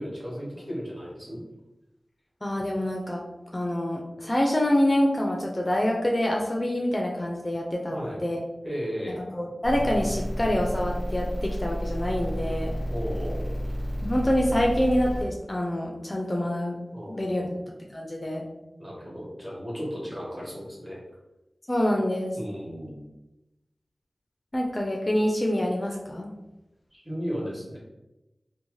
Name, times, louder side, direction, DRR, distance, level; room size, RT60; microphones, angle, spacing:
voice 1, 0.0-1.4 7.9-8.2 8.6-9.3 12.9-13.5 16.9-17.5 18.8-21.0 22.4-23.1 26.9-27.8, equal, 30° right, -5 dB, 1.1 m, -35 dB
voice 2, 2.4-3.2 3.5-8.4 9.3-12.7 14.0-16.8 17.1-17.5 17.9-18.5 21.7-22.4 24.5-26.3, left 1 dB, 30° left, 0 dB, 0.4 m, -26 dB
sound 1, 9.6-15.2, equal, 50° right, 1.1 m, -31 dB
2.7 x 2.0 x 3.0 m, 0.97 s
wide cardioid pair, 75°, 0 cm